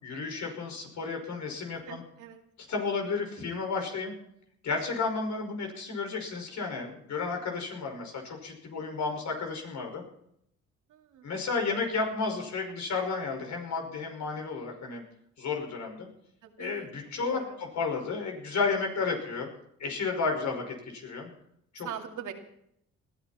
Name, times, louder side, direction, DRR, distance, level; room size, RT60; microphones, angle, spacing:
voice 1, 0.0-2.0 2.7-4.1 4.6-10.0 11.2-15.0 15.4-16.1 16.6-19.5 19.8-21.3 21.7-21.9, left 4 dB, 65° left, 2 dB, 5.4 m, -32 dB
voice 2, 1.9-2.4 10.9-11.3 16.4-16.9 17.2-17.6 21.8-22.3, right 9 dB, 85° right, 3 dB, 2.6 m, -42 dB
20.5 x 13.5 x 4.4 m, 0.72 s
cardioid pair, 90°, 30 cm